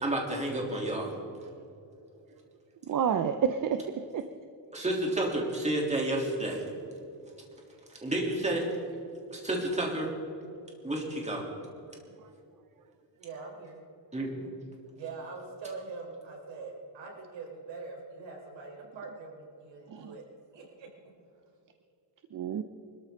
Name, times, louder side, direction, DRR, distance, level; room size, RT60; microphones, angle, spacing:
voice 1, 0.0-1.1 4.7-6.7 7.9-8.7 9.3-10.1 10.8-11.4 14.1-14.3, right 1 dB, 15° right, -1 dB, 3.4 m, -30 dB
voice 2, 2.8-4.3 19.9-20.1 22.3-22.6, right 7 dB, 45° right, 9 dB, 0.7 m, -29 dB
voice 3, 13.2-13.8 14.9-20.2 20.5-20.9, right 4 dB, 85° right, 0 dB, 4.5 m, -43 dB
24.0 x 14.0 x 3.9 m, 2.7 s
cardioid pair, 135°, 43 cm